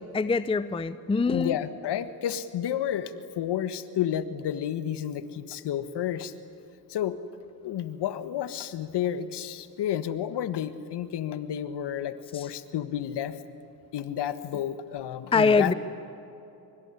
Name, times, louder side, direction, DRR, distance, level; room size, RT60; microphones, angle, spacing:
voice 1, 0.0-1.6 12.3-12.5 15.3-15.7, left 4 dB, 10° left, 15 dB, 0.7 m, -24 dB
voice 2, 1.3-6.3 6.9-7.2 7.6-13.4 13.9-15.7, left 10 dB, 55° left, 12 dB, 1.6 m, -31 dB
24.5 x 24.0 x 9.9 m, 2.9 s
hypercardioid pair, 65°, 49 cm